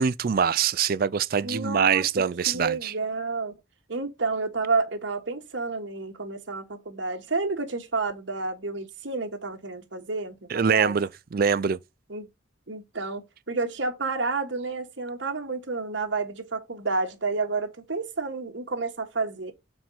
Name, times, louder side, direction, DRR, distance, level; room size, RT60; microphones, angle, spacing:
voice 1, 0.0-2.9 10.5-11.8, right 6 dB, 45° right, 0.4 m, -24 dB
voice 2, 1.4-2.0 2.5-3.5 3.9-10.9 12.1-12.3 12.7-19.5, right 3 dB, 60° right, 1.4 m, -30 dB
6.3 x 4.3 x 3.9 m
head